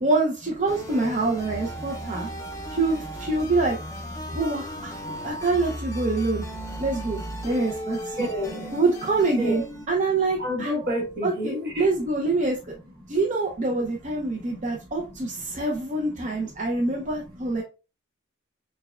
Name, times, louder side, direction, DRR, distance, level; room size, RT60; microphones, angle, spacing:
voice 1, 0.0-2.3 2.7-3.8 4.3-6.4 6.8-8.3 8.7-9.6 9.9-10.7 11.2-12.6 13.1-17.6, right 3 dB, 40° right, 0.6 m, -25 dB
sound 1, 0.7-9.9, equal, 15° left, 0.5 m, -36 dB
voice 2, 8.1-8.8 9.4-9.6 10.4-11.9 13.0-13.1 14.5-15.5 16.8-16.9 17.5-17.6, equal, 55° right, 1.4 m, -32 dB
6.4 x 2.2 x 2.4 m
head